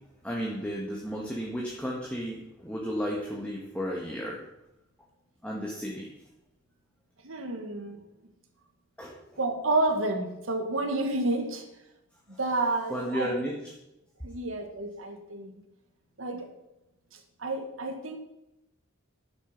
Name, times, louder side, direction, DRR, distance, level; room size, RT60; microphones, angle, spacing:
voice 1, 0.2-4.4 5.4-6.1 9.0-9.1 12.9-13.5, equal, 5° left, -3 dB, 1.7 m, -33 dB
voice 2, 7.2-8.1 9.4-11.7 12.4-13.3 14.2-15.6 16.2-16.5 17.1-18.2, right 2 dB, 75° right, 4 dB, 2.1 m, -30 dB
11.5 x 9.1 x 6.0 m, 0.90 s
head